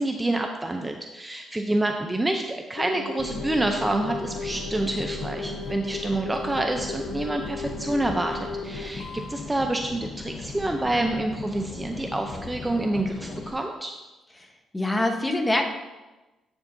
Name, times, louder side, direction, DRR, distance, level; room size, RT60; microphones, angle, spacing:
voice 1, 0.0-13.9, right 2 dB, 15° right, 3 dB, 0.6 m, -27 dB
sound 1, 2.8-9.3 11.1-11.3, left 3 dB, 80° left, 1.1 m, -36 dB
sound 2, 3.2-13.5, left 3 dB, 45° left, 0.9 m, -38 dB
voice 2, 14.7-15.6, left 1 dB, 15° left, 4 dB, 1.1 m, -24 dB
10.5 x 7.1 x 2.7 m, 1.1 s
cardioid pair, 90°, 0 cm